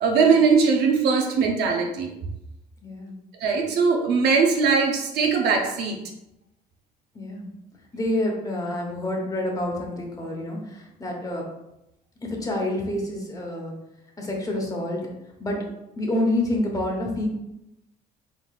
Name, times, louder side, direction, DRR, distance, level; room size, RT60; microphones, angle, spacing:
voice 1, 0.0-2.1 3.4-6.0, right 5 dB, 75° right, 2 dB, 0.8 m, -20 dB
voice 2, 2.8-3.1 7.1-7.5 7.9-11.5 12.2-13.7 14.2-15.0 15.4-15.6 16.0-17.3, left 1 dB, 20° left, -1 dB, 1.1 m, -28 dB
4.1 x 3.9 x 2.4 m, 0.86 s
cardioid pair, 110°, 17 cm